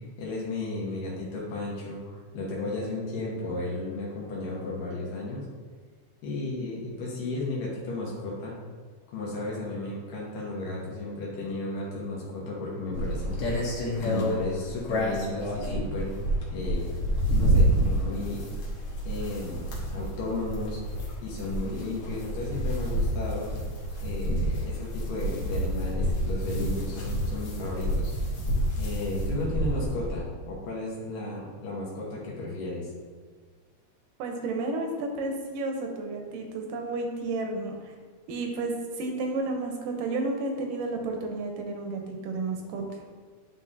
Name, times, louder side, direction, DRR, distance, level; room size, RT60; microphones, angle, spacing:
voice 1, 0.2-5.5 6.2-8.6 9.1-13.4 14.0-16.1 16.5-16.8 17.3-18.5 19.0-20.8 21.2-23.5 24.0-28.1 28.8-32.9, left 2 dB, 90° left, -5 dB, 2.9 m, -34 dB
sound 1, 12.9-30.2, equal, 60° left, 1.9 m, -28 dB
voice 2, 34.2-37.9 38.3-38.7 39.0-43.0, right 2 dB, 85° right, 2 dB, 2.4 m, -32 dB
10.5 x 3.7 x 2.7 m, 1.5 s
omnidirectional pair, 3.8 m